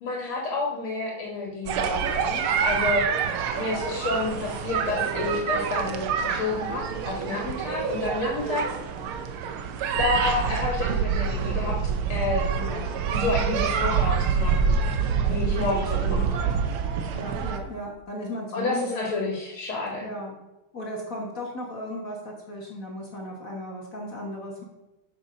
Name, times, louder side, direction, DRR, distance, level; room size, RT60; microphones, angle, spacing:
voice 1, 0.0-3.0 3.5-8.7 10.0-11.8 12.1-12.5 13.1-14.7 15.3-16.6 18.5-20.1, left 3 dB, 80° left, -1 dB, 2.5 m, -29 dB
sound 1, 1.7-17.6, right 6 dB, 80° right, 1.7 m, -26 dB
voice 2, 12.5-13.0 15.4-16.3 17.1-19.2 20.0-20.3 20.7-24.6, left 1 dB, 45° left, -1 dB, 1.7 m, -35 dB
7.1 x 6.8 x 5.2 m, 1.0 s
omnidirectional pair, 2.3 m